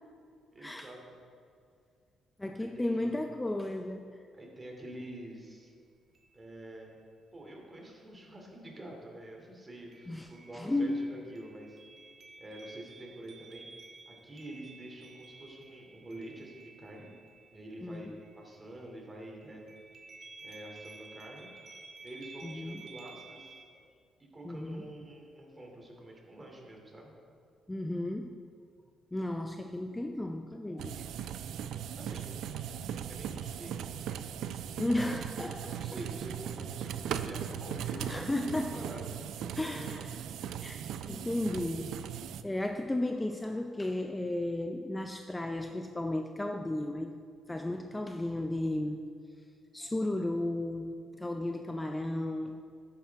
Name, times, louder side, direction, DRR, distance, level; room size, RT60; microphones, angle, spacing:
voice 1, 0.5-1.2 2.6-3.2 4.3-5.7 6.3-6.9 7.3-11.8 12.4-13.7 14.1-17.1 17.5-18.1 18.4-19.6 20.4-21.5 22.0-23.6 24.3-27.1 32.0-32.3 33.1-33.7 35.5-39.1, right 1 dB, 25° right, 0 dB, 2.7 m, -47 dB
voice 2, 2.4-4.2 10.1-10.3 10.5-11.1 17.8-18.1 22.4-22.8 24.4-24.8 27.7-28.4 29.1-31.1 34.8-35.8 37.9-38.8 39.5-40.2 40.6-42.0 42.4-47.1 47.5-49.1 49.7-52.6, left 1 dB, 15° left, 5 dB, 0.5 m, -34 dB
sound 1, 5.4-5.5 6.1-6.7 9.9-19.1 19.4-23.6, right 3 dB, 50° right, 1.4 m, -53 dB
sound 2, 30.8-42.4, right 9 dB, 80° right, 0.4 m, -38 dB
12.0 x 9.8 x 3.6 m, 2.3 s
cardioid pair, 90°, 0 cm